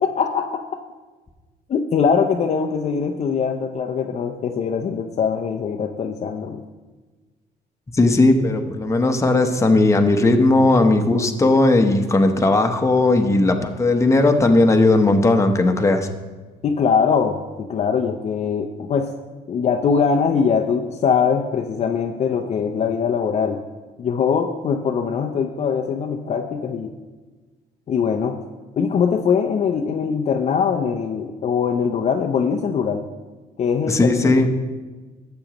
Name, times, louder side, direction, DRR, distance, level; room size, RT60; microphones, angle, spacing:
voice 1, 0.0-0.6 1.7-6.6 16.6-19.1 19.5-23.6 24.0-26.9 27.9-28.4 28.8-33.1 33.6-34.5, left 6 dB, 40° left, 4 dB, 0.6 m, -22 dB
voice 2, 7.9-16.1 33.9-34.5, left 2 dB, 15° left, 5 dB, 0.9 m, -17 dB
13.5 x 7.8 x 3.0 m, 1.3 s
cardioid pair, 110°, 17 cm